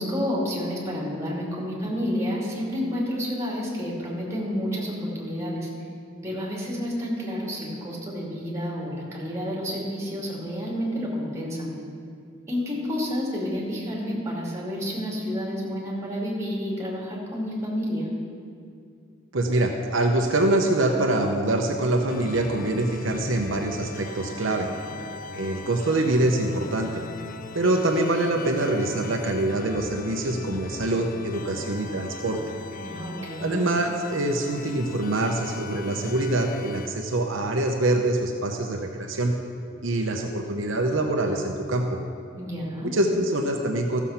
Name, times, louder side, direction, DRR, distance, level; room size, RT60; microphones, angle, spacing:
voice 1, 0.0-5.7 6.2-11.7 12.5-18.1 32.8-33.5 42.4-42.9, equal, 15° right, -4 dB, 2.6 m, -30 dB
voice 2, 19.3-24.7 25.4-27.0 27.5-32.4 33.4-39.3 39.8-42.0 42.8-44.0, right 1 dB, 70° right, 2 dB, 0.8 m, -24 dB
sound 1, 22.1-36.9, left 3 dB, 45° left, 0.6 m, -40 dB
14.5 x 7.1 x 5.8 m, 2.3 s
head